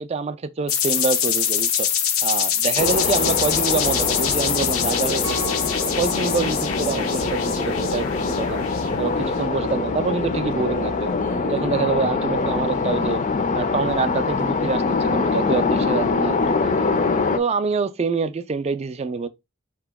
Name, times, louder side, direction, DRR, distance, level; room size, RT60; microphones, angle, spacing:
voice 1, 0.0-1.9 2.2-5.5 6.0-8.6 9.0-11.1 11.4-13.2 13.5-17.0 17.4-19.3, right 4 dB, 30° right, 0.3 m, -26 dB
sound 1, 0.7-9.2, left 8 dB, 85° left, 0.7 m, -24 dB
sound 2, 2.8-17.4, left 4 dB, 35° left, 0.5 m, -24 dB
Keyboard (musical), 5.2-7.9, right 5 dB, 75° right, 0.6 m, -39 dB
4.4 x 2.9 x 3.4 m
head